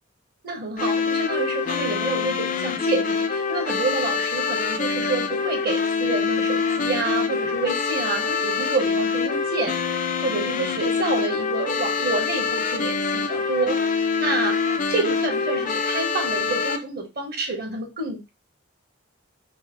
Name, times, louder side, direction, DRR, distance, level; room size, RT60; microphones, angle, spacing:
voice 1, 0.4-14.6 14.9-18.3, right 3 dB, 45° right, 4 dB, 1.0 m, -28 dB
sound 1, 0.8-16.8, left 5 dB, 35° left, 0.4 m, -25 dB
4.5 x 2.0 x 4.4 m, 0.25 s
head